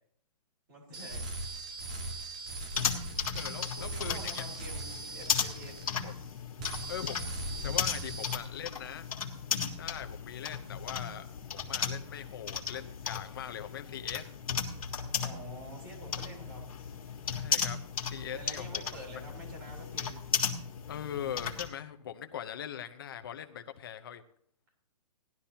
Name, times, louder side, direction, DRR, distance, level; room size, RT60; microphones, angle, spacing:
voice 1, 0.7-1.2 3.8-5.8 15.2-16.6 18.3-20.2, right 1 dB, 30° right, 0 dB, 3.6 m, -47 dB
sound 1, 0.9-6.3 6.6-8.4, right 2 dB, 10° right, 0.4 m, -40 dB
sound 2, 2.7-21.7, left 7 dB, 60° left, 1.7 m, -36 dB
voice 2, 3.3-4.4 5.9-6.1 6.9-9.1 9.8-11.3 11.5-14.3 17.3-17.8 18.1-18.8 20.9-24.2, left 9 dB, 35° left, 8 dB, 0.8 m, -41 dB
18.0 x 12.0 x 2.9 m, 0.64 s
hypercardioid pair, 175°, 21 cm